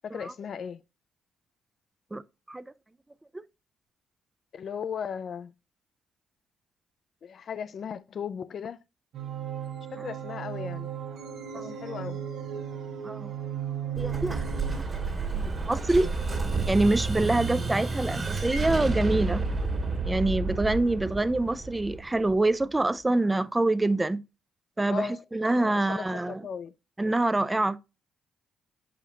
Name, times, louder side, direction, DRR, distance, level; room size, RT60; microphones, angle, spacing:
voice 1, 0.0-0.8 4.5-5.5 7.2-8.8 9.9-10.9 11.5-12.3 24.9-25.2 25.6-26.7, left 7 dB, 55° left, 0.4 m, -37 dB
sound 1, 9.1-14.8, right 9 dB, 75° right, 0.9 m, -36 dB
voice 2, 14.0-14.4 15.3-16.1 16.7-19.4 20.1-24.2 24.8-26.4 27.0-27.8, right 2 dB, 15° right, 0.4 m, -26 dB
Explosion, 14.0-22.6, right 3 dB, 35° right, 1.7 m, -30 dB
6.7 x 5.0 x 2.9 m
cardioid pair, 75°, 0 cm